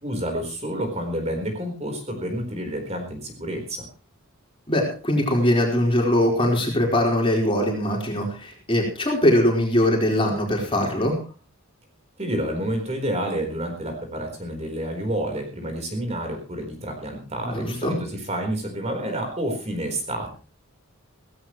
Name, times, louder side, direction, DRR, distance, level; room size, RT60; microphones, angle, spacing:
voice 1, 0.0-3.9 12.2-20.3, right 1 dB, 30° right, 3 dB, 4.1 m, -29 dB
voice 2, 4.7-11.1 17.5-17.9, left 1 dB, 25° left, 0 dB, 4.5 m, -21 dB
17.5 x 16.5 x 3.1 m, 0.37 s
head